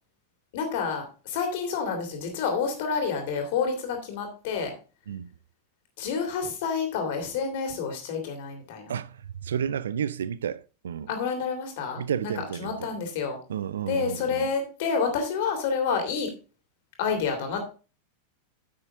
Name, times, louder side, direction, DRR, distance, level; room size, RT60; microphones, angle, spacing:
voice 1, 0.5-4.7 6.0-8.9 11.1-12.3 12.6-13.4 13.9-16.3 17.0-17.6, left 5 dB, 50° left, 3.0 m, -29 dB
voice 2, 8.9-11.1 12.0-12.9 13.5-14.5, right 8 dB, 65° right, 0.5 m, -31 dB
10.0 x 7.6 x 3.7 m
figure-of-eight pair, 90°, 0 cm